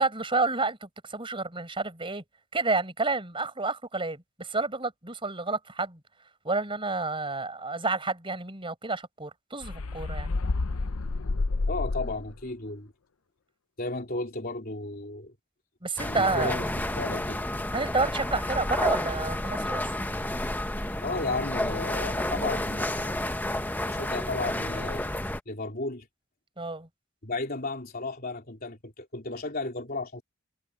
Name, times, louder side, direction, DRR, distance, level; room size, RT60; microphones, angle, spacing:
voice 1, 0.0-2.2 2.5-6.0 6.4-10.3 15.8-16.6 17.7-19.8 26.6-26.9, right 3 dB, 25° right, 5.3 m, -29 dB
sound 1, 9.6-12.4, left 3 dB, 75° left, 0.7 m, -29 dB
voice 2, 11.7-12.9 13.8-15.3 16.0-17.4 21.0-23.3 23.8-26.1 27.2-30.2, left 3 dB, 45° left, 3.8 m, -34 dB
sound 2, 16.0-25.4, left 1 dB, 10° left, 0.9 m, -30 dB
head